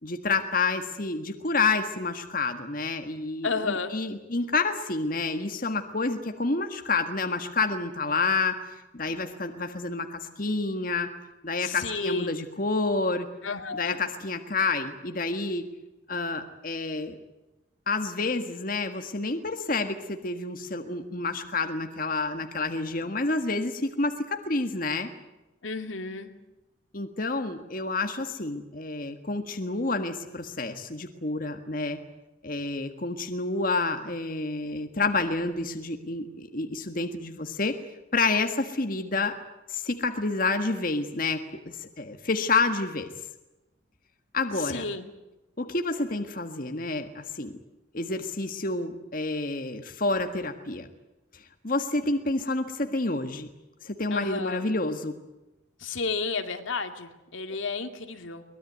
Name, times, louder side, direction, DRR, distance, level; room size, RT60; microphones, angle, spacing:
voice 1, 0.0-11.1 11.4-13.3 13.7-15.7 16.1-17.2 17.9-25.1 26.9-32.0 32.4-37.8 38.1-39.4 39.7-43.1 44.3-44.8 45.6-47.5 47.9-50.9 51.3-53.5 53.8-55.2, left 3 dB, 45° left, 6 dB, 1.7 m, -29 dB
voice 2, 3.4-3.9 11.6-12.3 13.4-14.0 25.6-26.3 44.6-45.1 54.1-54.6 55.8-58.4, left 4 dB, 85° left, 6 dB, 2.3 m, -32 dB
23.0 x 20.5 x 9.3 m, 0.99 s
head